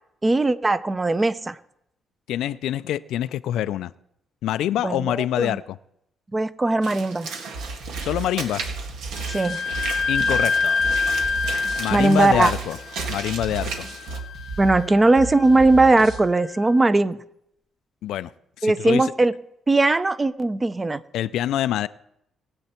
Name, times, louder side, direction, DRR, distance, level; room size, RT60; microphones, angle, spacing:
voice 1, 0.2-1.6 4.8-5.6 6.3-7.3 9.3-9.6 11.9-12.5 14.6-17.2 18.6-19.3 19.7-21.0, right 2 dB, 20° right, 14 dB, 0.7 m, -19 dB
voice 2, 2.3-3.9 4.4-5.8 8.0-8.6 10.1-10.8 11.8-12.8 13.1-13.9 18.0-18.3 18.6-19.1 21.1-21.9, left 12 dB, 85° left, 15 dB, 0.4 m, -25 dB
Walk footsteps / Splash splatter, 6.8-14.2, right 5 dB, 85° right, 1.8 m, -35 dB
sound 1, 7.5-16.3, right 3 dB, 65° right, 1.5 m, -35 dB
Wind instrument woodwind instrument, 9.2-16.6, left 4 dB, 55° left, 0.8 m, -27 dB
20.5 x 7.9 x 4.4 m, 0.76 s
cardioid pair, 90°, 0 cm